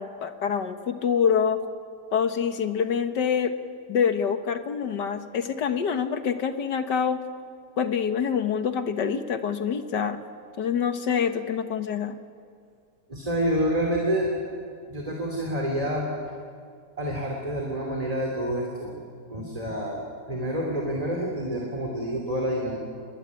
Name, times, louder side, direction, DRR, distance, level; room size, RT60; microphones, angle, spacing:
voice 1, 0.0-1.6 2.1-3.5 3.9-7.2 7.8-10.2 10.6-12.2, left 7 dB, 70° left, 9 dB, 1.9 m, -26 dB
voice 2, 13.1-14.3 14.9-16.1 17.0-18.9 19.3-20.0 20.3-22.8, equal, 20° right, -1 dB, 3.2 m, -28 dB
26.5 x 21.5 x 9.8 m, 2.2 s
omnidirectional pair, 2.0 m